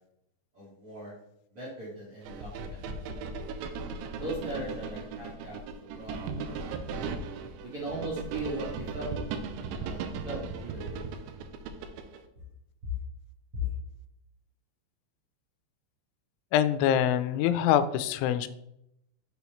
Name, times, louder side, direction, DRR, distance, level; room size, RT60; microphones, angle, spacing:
voice 1, 0.5-1.1 1.5-2.8 4.2-6.7 7.6-9.5 9.8-10.0 10.2-11.0, right 2 dB, 45° right, -7 dB, 2.0 m, -39 dB
sound 1, 2.3-12.2, right 4 dB, 85° right, 2.9 m, -37 dB
voice 2, 16.5-18.5, left 10 dB, 90° left, 12 dB, 3.0 m, -24 dB
7.0 x 6.2 x 3.0 m, 0.80 s
omnidirectional pair, 5.3 m